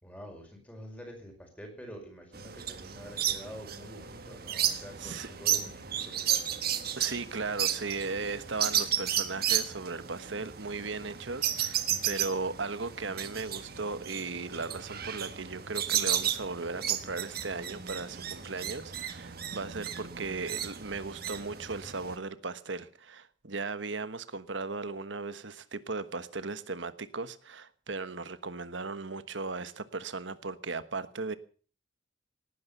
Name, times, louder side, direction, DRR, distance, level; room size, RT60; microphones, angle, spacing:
voice 1, 0.0-6.4 11.9-12.2, equal, 10° left, 2 dB, 5.2 m, -47 dB
sound 1, 2.3-22.1, right 10 dB, 50° right, 1.5 m, -33 dB
voice 2, 7.0-31.4, right 3 dB, 75° right, 13 dB, 1.3 m, -37 dB
18.5 x 10.5 x 6.8 m, 0.41 s
head